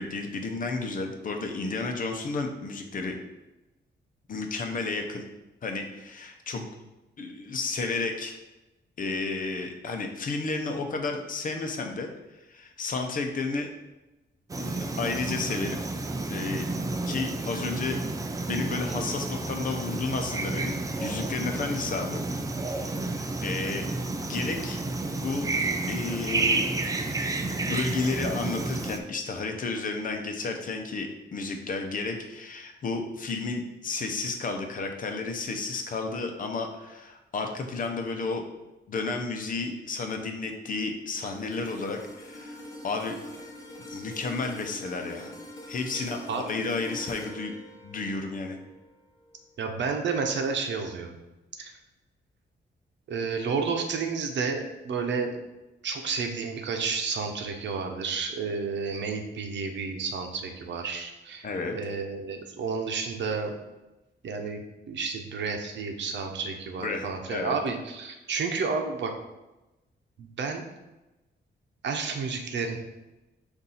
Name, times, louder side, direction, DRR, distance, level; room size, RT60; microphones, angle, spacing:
voice 1, 0.0-3.2 4.3-5.2 5.6-6.7 7.2-8.4 9.0-12.1 12.5-13.7 14.6-15.8 16.3-16.7 17.1-18.0 18.5-22.2 22.6-23.9 24.2-24.8 25.2-25.5 25.9-26.7 27.6-38.4 38.9-43.2 43.9-45.3 45.7-46.2 46.5-47.5 47.8-48.6 61.4-61.8 66.8-67.6, left 3 dB, 45° left, 4 dB, 0.8 m, -32 dB
sound 1, 14.5-29.0, right 2 dB, 20° right, 0.4 m, -31 dB
sound 2, 41.3-49.7 50.1-50.3, left 1 dB, 20° left, 1.1 m, -44 dB
voice 2, 45.9-46.4 49.6-51.1 51.6-51.7 53.1-55.4 55.8-61.5 61.7-63.5 64.2-64.6 64.9-69.1 70.2-70.6 71.8-72.8, right 5 dB, 80° right, 4 dB, 0.8 m, -31 dB
6.6 x 2.7 x 5.6 m, 1.0 s
wide cardioid pair, 165°, 19 cm